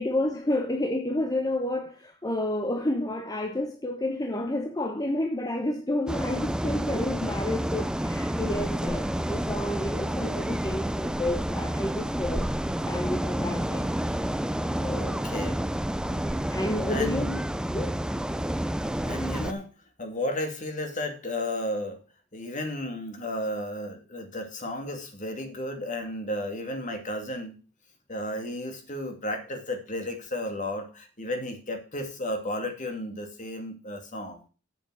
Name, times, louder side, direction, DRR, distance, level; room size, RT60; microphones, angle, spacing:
voice 1, 0.0-13.9 14.8-15.2 16.5-17.3 17.7-18.0, left 1 dB, 20° left, 0.9 m, -30 dB
sound 1, 6.1-19.5, right 1 dB, 5° right, 0.4 m, -29 dB
voice 2, 14.9-15.6 16.1-16.2 16.5-16.6 16.9-17.4 19.0-19.7 20.0-22.0 22.3-27.5 28.1-34.4, left 1 dB, 40° left, 2.3 m, -33 dB
7.9 x 7.3 x 6.1 m
head